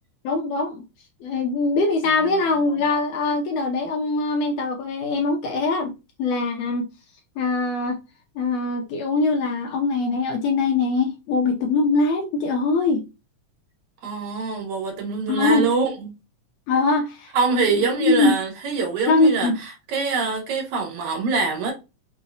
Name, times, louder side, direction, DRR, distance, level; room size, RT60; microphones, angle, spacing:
voice 1, 0.2-0.8 1.2-5.9 6.2-6.9 7.4-8.0 8.4-13.1 15.3-15.7 16.7-17.3 17.6-18.3 19.1-19.6, left 3 dB, 80° left, 1.5 m, -22 dB
voice 2, 14.0-16.1 17.3-19.5 19.9-21.7, right 4 dB, 80° right, 2.6 m, -24 dB
5.5 x 2.1 x 2.6 m
omnidirectional pair, 3.4 m